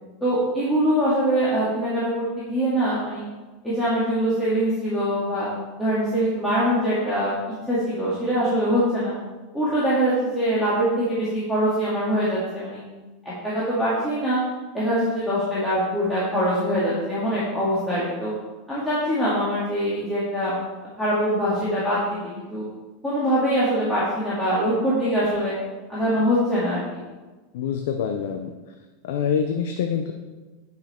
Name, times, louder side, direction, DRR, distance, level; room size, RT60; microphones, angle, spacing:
voice 1, 0.2-3.3 3.6-5.5 5.8-7.4 7.7-9.1 9.5-12.8 13.2-14.4 14.7-18.3 18.7-20.6 21.0-22.6 23.0-25.5 25.9-26.8, equal, 10° left, -10 dB, 2.4 m, -23 dB
voice 2, 27.5-28.5 29.1-30.1, left 7 dB, 75° left, 5 dB, 0.6 m, -25 dB
9.9 x 5.7 x 4.4 m, 1.3 s
supercardioid pair, 140°, 0 cm